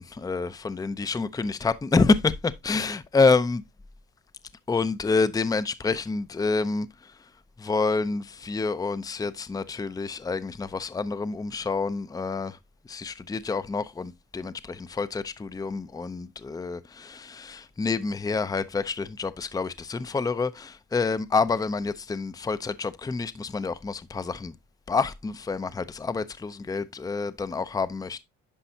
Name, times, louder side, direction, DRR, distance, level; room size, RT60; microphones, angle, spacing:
voice 1, 0.0-3.6 4.7-7.1 7.6-12.6 12.9-24.5 24.9-28.2, left 4 dB, 10° left, 0.5 m, -27 dB
10.0 x 5.3 x 2.7 m
cardioid pair, 90°, 30 cm